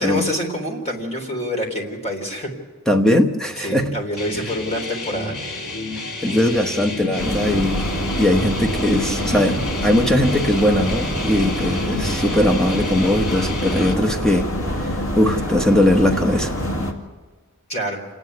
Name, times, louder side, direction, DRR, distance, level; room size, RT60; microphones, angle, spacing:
voice 1, 0.0-2.5 3.6-5.4 17.7-18.1, equal, 30° left, 2 dB, 3.8 m, -26 dB
voice 2, 2.9-3.9 6.2-7.8 8.2-14.5 14.8-14.9 15.1-16.5, left 1 dB, 5° left, 4 dB, 1.1 m, -19 dB
sound 1, 4.2-13.9, left 2 dB, 80° left, 2.7 m, -31 dB
sound 2, 7.2-16.9, equal, 65° left, 2.4 m, -25 dB
28.0 x 9.8 x 9.5 m, 1.4 s
head